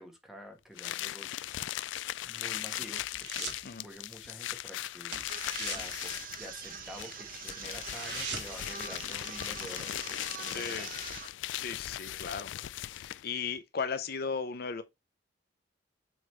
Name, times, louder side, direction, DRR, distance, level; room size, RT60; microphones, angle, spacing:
voice 1, 0.0-1.9 2.2-3.5 3.8-5.2 5.6-10.9, equal, ahead, 1.5 m, -48 dB
sound 1, 0.8-13.3, left 13 dB, 85° left, 0.3 m, -39 dB
sound 2, 2.2-3.7 4.0-4.3 4.5-4.7 5.0-6.9 7.3-7.4 7.6-8.7 9.1-9.2, right 5 dB, 75° right, 2.0 m, -41 dB
sound 3, 5.3-11.3, right 7 dB, 50° right, 0.8 m, -44 dB
voice 2, 10.5-10.9 11.5-12.5 12.8-14.8, left 5 dB, 55° left, 0.7 m, -36 dB
7.7 x 4.0 x 3.2 m
head